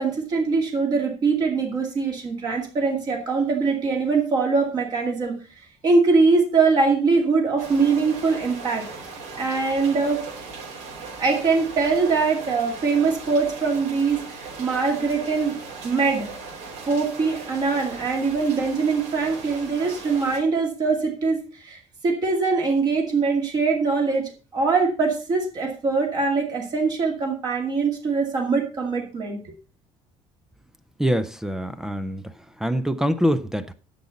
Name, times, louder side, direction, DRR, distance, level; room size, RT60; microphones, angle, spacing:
voice 1, 0.0-5.3 5.8-8.8 9.4-10.2 11.2-15.5 15.8-16.3 16.9-24.2 24.5-29.4, right 4 dB, 35° right, 2.4 m, -22 dB
sound 1, 7.6-20.4, right 4 dB, 80° right, 4.6 m, -38 dB
voice 2, 31.0-32.3 32.6-33.7, equal, 5° right, 0.5 m, -24 dB
10.5 x 7.1 x 5.1 m
cardioid pair, 175°, 12 cm